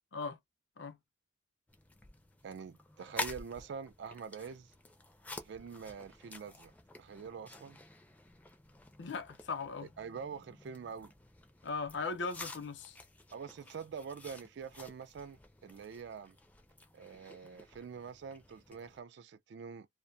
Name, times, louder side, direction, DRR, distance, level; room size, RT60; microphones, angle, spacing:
sound 1, 1.7-19.0, left 2 dB, 10° left, 0.4 m, -49 dB
voice 1, 2.4-4.7 5.3-6.7 7.0-7.8 10.0-11.1 13.3-16.4 16.9-19.9, right 6 dB, 70° right, 0.3 m, -45 dB
voice 2, 9.0-9.9 11.6-13.0, left 4 dB, 75° left, 0.6 m, -38 dB
2.4 x 2.1 x 2.7 m
head